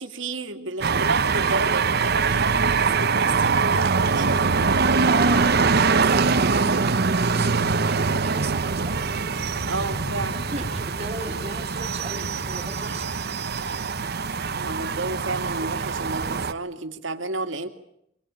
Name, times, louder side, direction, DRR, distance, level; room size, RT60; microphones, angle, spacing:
voice 1, 0.0-4.6 9.7-10.4 14.6-17.7, right 2 dB, 75° right, 7 dB, 2.4 m, -31 dB
sound 1, 0.8-16.5, right 4 dB, 55° right, 1.0 m, -23 dB
voice 2, 5.0-7.6 7.9-9.0 10.3-13.1, right 3 dB, 30° right, -3 dB, 2.2 m, -36 dB
sound 2, 8.9-14.8, equal, 50° left, 2.9 m, -40 dB
24.5 x 22.5 x 8.8 m, 0.76 s
head